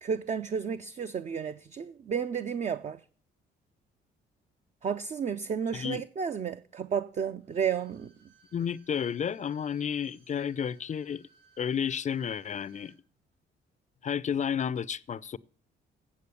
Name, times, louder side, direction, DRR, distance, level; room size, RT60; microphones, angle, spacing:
voice 1, 0.0-3.0 4.8-8.1, right 7 dB, 35° right, 0.5 m, -32 dB
Bowed string instrument, 7.4-13.0 13.3-13.4, right 5 dB, 85° right, 6.6 m, -63 dB
voice 2, 8.5-11.2 11.6-12.9 14.0-15.4, left 8 dB, 40° left, 0.5 m, -31 dB
8.5 x 7.7 x 6.8 m
cardioid pair, 90°, 20 cm